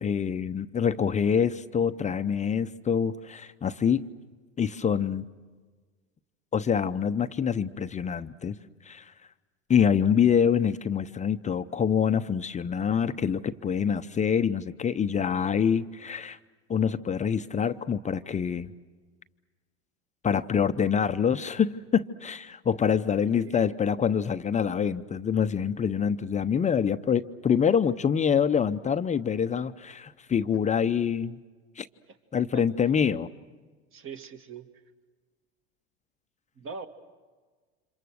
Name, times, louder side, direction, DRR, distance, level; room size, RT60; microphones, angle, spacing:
voice 1, 0.0-4.0 4.6-5.2 6.5-8.6 8.8-9.1 9.7-16.4 16.7-18.7 20.2-31.4 31.8-31.9 32.3-33.3, left 7 dB, 20° left, 10 dB, 0.7 m, -26 dB
voice 2, 23.4-23.8 32.1-32.2 32.5-32.6 33.9-34.7 36.6-36.9, right 5 dB, 40° right, 7 dB, 2.3 m, -41 dB
29.5 x 27.0 x 6.5 m, 1.4 s
hypercardioid pair, 85°, 32 cm